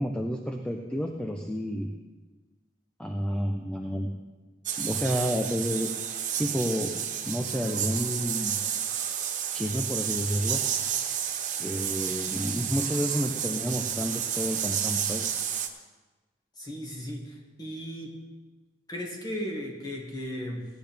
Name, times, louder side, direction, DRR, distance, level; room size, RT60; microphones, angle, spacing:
voice 1, 0.0-1.9 3.0-4.1 4.8-5.9 6.4-6.9 7.2-8.6 9.5-10.6 11.6-15.4, equal, 5° left, 3 dB, 0.6 m, -30 dB
sound 1, 4.7-15.7, right 9 dB, 45° right, 0.8 m, -31 dB
voice 2, 16.6-18.1 18.9-20.7, equal, 20° left, 0 dB, 1.9 m, -36 dB
16.5 x 10.5 x 3.5 m, 1.2 s
head